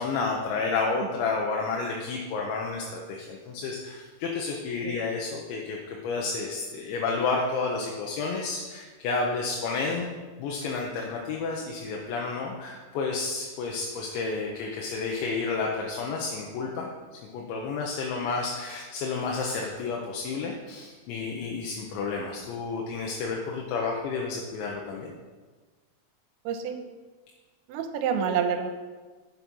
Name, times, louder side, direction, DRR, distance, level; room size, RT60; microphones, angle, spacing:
voice 1, 0.0-10.1 10.4-16.9 17.3-25.1, left 4 dB, 80° left, -1 dB, 3.2 m, -31 dB
voice 2, 26.5-26.8 27.7-28.7, right 7 dB, 85° right, 6 dB, 3.1 m, -27 dB
11.0 x 7.7 x 5.4 m, 1.4 s
omnidirectional pair, 5.3 m